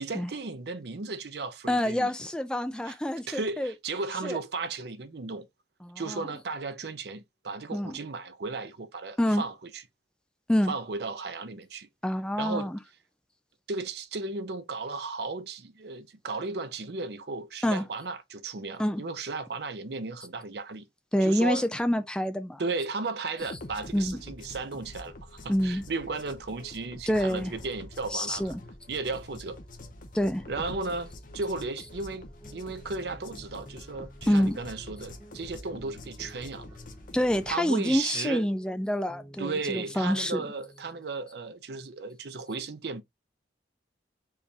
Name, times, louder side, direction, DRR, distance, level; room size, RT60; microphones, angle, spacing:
voice 1, 0.0-2.1 2.9-3.0 3.3-5.5 6.0-9.8 10.7-11.9 12.4-12.7 13.7-20.8 21.2-21.7 22.6-28.6 28.9-29.6 30.5-36.8 37.5-38.5 39.4-43.0, right 3 dB, 65° right, 0.6 m, -35 dB
voice 2, 1.7-3.7 4.2-4.4 5.8-6.3 7.7-8.0 9.2-9.4 10.5-10.7 12.0-12.8 17.6-17.8 18.8-19.0 21.1-22.6 23.9-24.2 25.5-25.8 27.1-27.5 28.1-28.6 30.1-30.5 34.3-34.6 37.1-40.4, equal, 5° left, 0.3 m, -27 dB
sound 1, 23.4-37.5, left 1 dB, 45° left, 0.8 m, -46 dB
sound 2, 31.8-41.2, equal, 10° right, 1.1 m, -53 dB
4.6 x 3.4 x 2.7 m
head